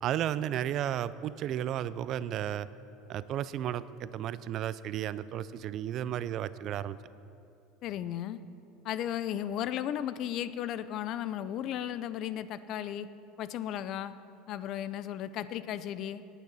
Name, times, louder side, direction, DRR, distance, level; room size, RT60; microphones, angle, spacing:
voice 1, 0.0-2.7 3.1-7.0, right 11 dB, 50° right, 16 dB, 0.4 m, -33 dB
voice 2, 7.8-8.4 8.8-13.1 13.4-14.1 14.5-16.3, left 11 dB, 55° left, 14 dB, 0.5 m, -35 dB
18.5 x 9.1 x 4.1 m, 2.7 s
supercardioid pair, 115°, 0 cm